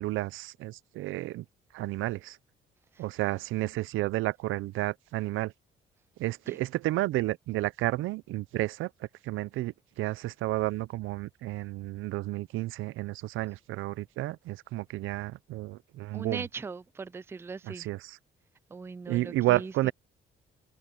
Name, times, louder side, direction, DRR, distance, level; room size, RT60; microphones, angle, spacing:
voice 1, 0.0-1.5 1.7-2.4 3.0-5.5 6.2-16.4 17.7-18.2 19.1-19.9, right 17 dB, 90° right, 0.6 m, -31 dB
voice 2, 16.1-17.9 18.7-19.9, right 4 dB, 10° right, 0.3 m, -40 dB
cardioid pair, 90°, 20 cm